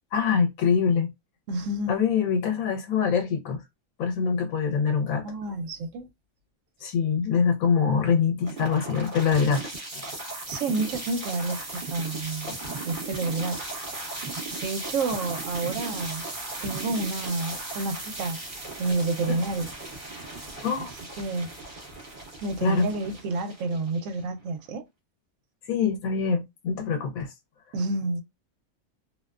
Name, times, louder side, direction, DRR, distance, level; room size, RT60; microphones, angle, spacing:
voice 1, 0.1-1.1 1.9-3.6 4.0-5.2 6.8-10.1 12.5-12.6 19.3-19.4 20.6-20.9 22.6-22.9 25.6-27.3, left 6 dB, 90° left, 1.0 m, -24 dB
voice 2, 1.5-2.0 5.2-6.1 10.5-12.6 12.8-13.7 14.6-16.2 16.6-18.4 18.8-19.7 21.2-21.5 22.4-24.8 27.7-28.2, right 3 dB, 75° right, 0.9 m, -29 dB
sound 1, 8.4-24.5, right 2 dB, 40° right, 1.1 m, -37 dB
2.5 x 2.1 x 2.3 m
omnidirectional pair, 1.4 m